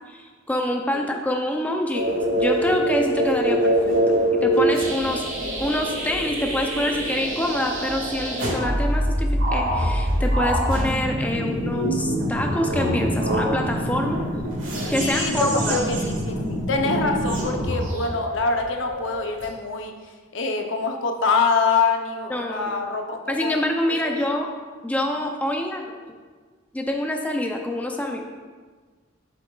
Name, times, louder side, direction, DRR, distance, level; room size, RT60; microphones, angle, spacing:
voice 1, 0.1-4.0 4.4-5.2 5.6-14.2 14.9-15.8 22.3-22.9 23.3-24.5 24.8-25.9 26.7-28.2, left 1 dB, 10° left, 2 dB, 0.4 m, -26 dB
sound 1, 1.9-19.4, equal, 70° right, 1.9 m, -24 dB
voice 2, 15.0-23.6 24.0-24.4, left 4 dB, 70° left, 4 dB, 0.7 m, -25 dB
7.6 x 7.4 x 2.3 m, 1.5 s
head